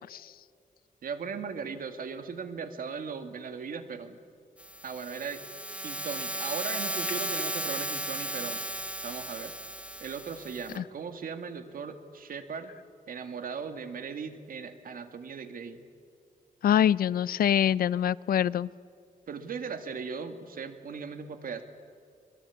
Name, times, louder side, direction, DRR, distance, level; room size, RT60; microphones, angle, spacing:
voice 1, 1.0-4.2 4.8-5.4 5.8-8.6 9.0-9.5 10.0-12.7 13.1-15.9 19.3-21.6, right 5 dB, 75° right, 8 dB, 2.1 m, -38 dB
sound 1, 4.6-10.8, right 1 dB, 10° right, 1.5 m, -35 dB
voice 2, 16.6-18.7, left 10 dB, 80° left, 21 dB, 0.5 m, -24 dB
24.0 x 22.5 x 8.5 m, 2.4 s
wide cardioid pair, 130°, 15 cm